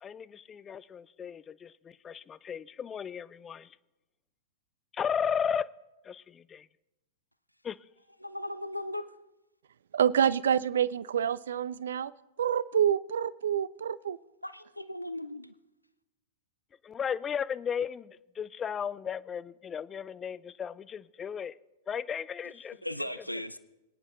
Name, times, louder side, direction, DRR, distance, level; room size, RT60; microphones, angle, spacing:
voice 1, 0.0-3.8 4.9-5.7 6.0-6.7 7.6-7.8 16.8-21.6 21.9-22.8, left 7 dB, 20° left, 0.3 m, -35 dB
voice 2, 8.2-9.1 14.4-15.5 22.8-23.6, left 1 dB, 90° left, 0.4 m, -37 dB
voice 3, 9.9-12.1 12.4-14.2, right 9 dB, 60° right, 0.3 m, -27 dB
24.0 x 9.8 x 2.5 m
figure-of-eight pair, 100°, 0 cm